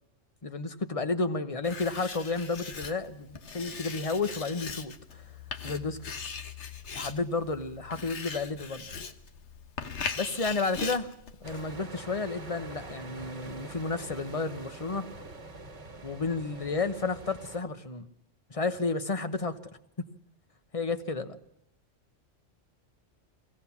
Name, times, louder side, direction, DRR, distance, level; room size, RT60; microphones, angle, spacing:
voice 1, 0.4-5.2 5.6-6.0 6.9-8.9 10.2-11.1 11.4-15.1 16.0-18.1 18.5-19.6 20.7-21.4, left 3 dB, 30° left, 10 dB, 1.1 m, -32 dB
Writing, 1.6-11.8, left 5 dB, 70° left, 1.4 m, -40 dB
sound 1, 11.4-17.6, right 2 dB, 65° right, 1.8 m, -44 dB
23.0 x 17.0 x 7.2 m, 0.81 s
omnidirectional pair, 1.3 m